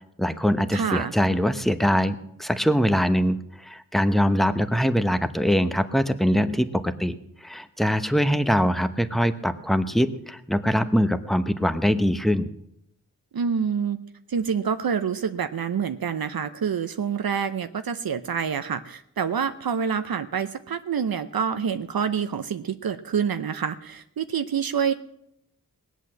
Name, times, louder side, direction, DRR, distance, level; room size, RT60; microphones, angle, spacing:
voice 1, 0.2-12.5, equal, ahead, 11 dB, 0.9 m, -23 dB
voice 2, 0.7-1.1 13.3-14.0 14.3-24.9, right 7 dB, 75° right, 9 dB, 0.7 m, -27 dB
20.0 x 8.3 x 7.6 m, 0.79 s
wide cardioid pair, 75°, 36 cm